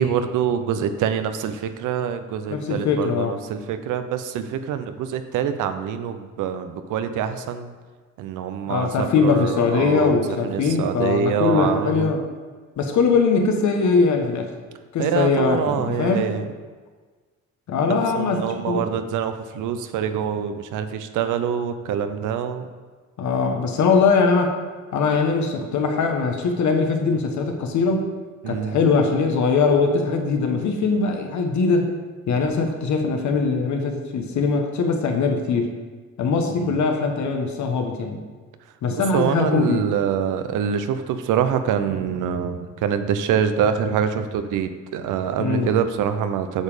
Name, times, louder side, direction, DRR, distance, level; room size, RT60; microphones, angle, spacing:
voice 1, 0.0-7.7 8.2-12.1 15.0-16.5 18.1-22.7 28.4-28.8 36.5-36.8 39.1-46.6, right 8 dB, 85° right, 10 dB, 0.7 m, -25 dB
voice 2, 2.5-3.4 8.7-12.2 12.8-14.5 14.9-16.3 17.7-18.9 23.2-24.6 24.9-28.1 28.5-31.9 32.3-35.7 36.2-38.2 38.8-39.8 45.4-45.7, left 4 dB, 70° left, 4 dB, 1.2 m, -21 dB
8.1 x 5.2 x 5.0 m, 1.4 s
cardioid pair, 90°, 30 cm